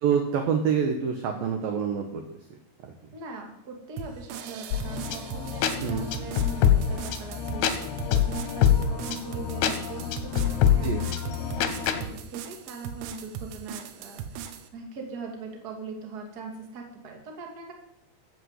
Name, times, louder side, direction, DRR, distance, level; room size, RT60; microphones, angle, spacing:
voice 1, 0.0-2.2 2.8-2.9 5.8-6.1 10.8-11.0, right 7 dB, 70° right, 5 dB, 2.2 m, -26 dB
voice 2, 3.1-14.4 14.7-17.7, right 4 dB, 30° right, 2 dB, 1.9 m, -41 dB
sound 1, 4.0-14.7, right 8 dB, 85° right, 3.7 m, -39 dB
sound 2, 4.7-12.0, left 9 dB, 70° left, 2.7 m, -26 dB
14.0 x 7.8 x 8.3 m, 0.80 s
omnidirectional pair, 5.6 m